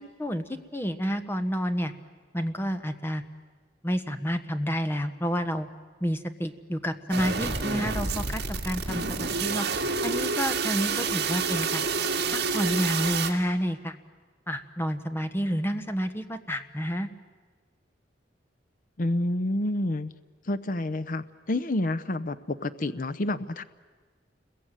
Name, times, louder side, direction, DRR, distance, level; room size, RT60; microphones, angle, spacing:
voice 1, 0.2-1.9 2.3-3.2 3.8-5.7 6.0-9.7 10.0-11.9 12.3-14.0 14.5-17.1, equal, 15° left, 8 dB, 1.3 m, -29 dB
sound 1, 7.1-13.3, right 4 dB, 65° right, 2.5 m, -28 dB
voice 2, 19.0-20.1 20.5-23.6, left 1 dB, 50° left, 14 dB, 0.8 m, -29 dB
29.5 x 22.0 x 9.2 m, 1.4 s
head